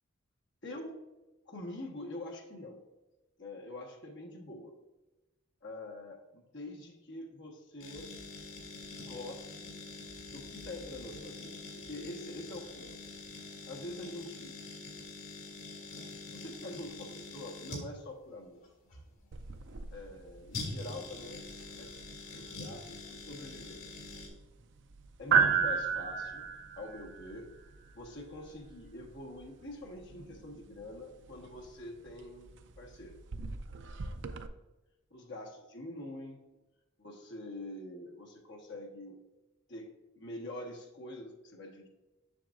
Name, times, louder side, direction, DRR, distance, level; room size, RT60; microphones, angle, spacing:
voice 1, 0.6-1.0 1.5-2.8 3.4-4.7 5.6-8.1 9.0-9.8 10.3-11.6 11.8-13.0 13.7-14.5 16.3-18.6 19.9-21.5 21.7-21.9 22.3-24.0 25.2-26.5 26.7-27.5 27.9-33.2 34.1-34.2 35.1-36.4 37.0-39.2 39.7-41.9, left 1 dB, 55° left, 1 dB, 1.3 m, -45 dB
sound 1, 7.8-24.3, left 3 dB, 85° left, 2.1 m, -45 dB
sound 2, 19.3-34.5, right 6 dB, 60° right, 0.5 m, -36 dB
7.5 x 6.2 x 2.5 m, 1.1 s
head